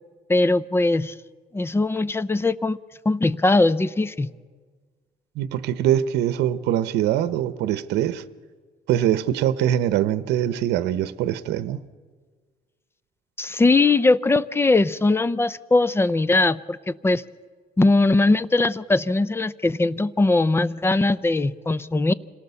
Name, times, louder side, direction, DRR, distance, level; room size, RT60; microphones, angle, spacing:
voice 1, 0.3-1.1 1.5-2.8 3.1-4.3 13.4-17.2 17.8-22.1, left 2 dB, 15° left, 0.6 m, -20 dB
voice 2, 5.4-8.2 8.9-11.8, right 11 dB, 80° right, 0.9 m, -23 dB
26.5 x 18.0 x 6.9 m
cardioid pair, 110°, 17 cm